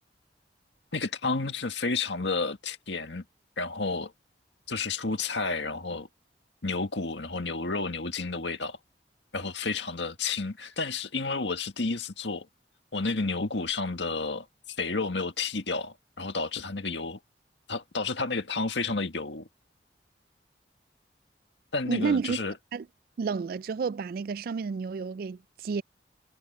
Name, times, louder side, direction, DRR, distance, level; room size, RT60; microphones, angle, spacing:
voice 1, 0.9-3.2 3.6-4.1 4.7-6.1 6.6-8.8 9.3-12.5 12.9-14.5 14.8-17.2 17.7-19.5 21.7-22.5, left 3 dB, 90° left, 1.9 m, -31 dB
voice 2, 21.9-22.4 22.7-22.9 23.2-25.8, right 5 dB, 55° right, 0.3 m, -30 dB
head